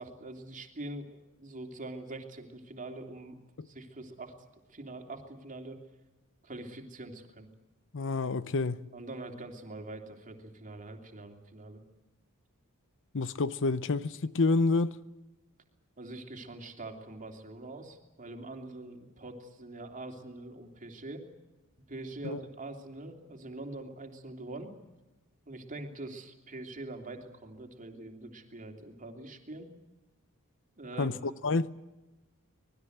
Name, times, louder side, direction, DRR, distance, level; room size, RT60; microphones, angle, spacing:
voice 1, 0.0-3.4 3.6-4.3 4.7-5.8 6.4-7.5 8.9-11.8 16.0-21.2 21.9-24.7 25.5-29.7 30.8-31.1, right 2 dB, 35° right, 3.0 m, -44 dB
voice 2, 7.9-8.8 13.1-14.9 22.2-22.4 31.0-31.2 31.4-31.7, left 3 dB, 60° left, 0.8 m, -28 dB
25.5 x 20.0 x 8.0 m
head